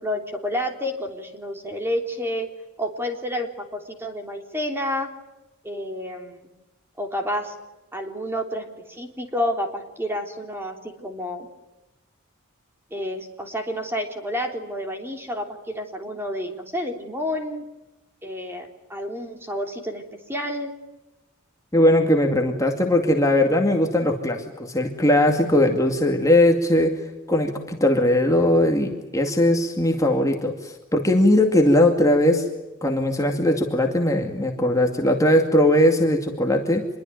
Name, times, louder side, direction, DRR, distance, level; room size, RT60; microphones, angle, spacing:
voice 1, 0.0-2.5 2.8-5.1 5.6-6.5 7.0-7.5 7.9-11.5 12.9-17.6 18.2-20.0 20.3-20.7, equal, 10° right, 4 dB, 3.3 m, -29 dB
voice 2, 21.7-27.0 27.3-32.5 32.8-36.9, left 1 dB, 15° left, 2 dB, 2.3 m, -19 dB
27.0 x 22.5 x 9.2 m, 1.0 s
head